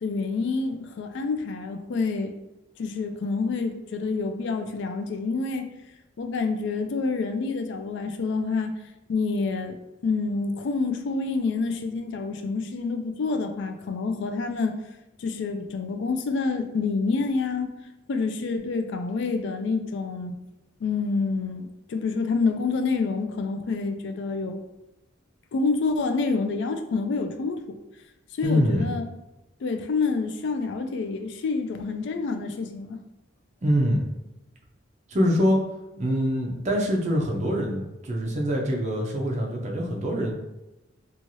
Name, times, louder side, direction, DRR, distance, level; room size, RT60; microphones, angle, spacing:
voice 1, 0.0-2.3 2.8-5.7 6.2-8.7 9.1-9.8 10.0-14.8 15.2-17.7 18.1-20.3 20.8-24.6 25.5-27.6 28.3-29.0 29.6-33.0, left 4 dB, 60° left, 7 dB, 0.3 m, -27 dB
voice 2, 28.4-28.9 33.6-34.1 35.1-35.6 36.0-40.3, equal, 35° right, 0 dB, 0.5 m, -24 dB
3.0 x 2.4 x 2.6 m, 1.0 s
head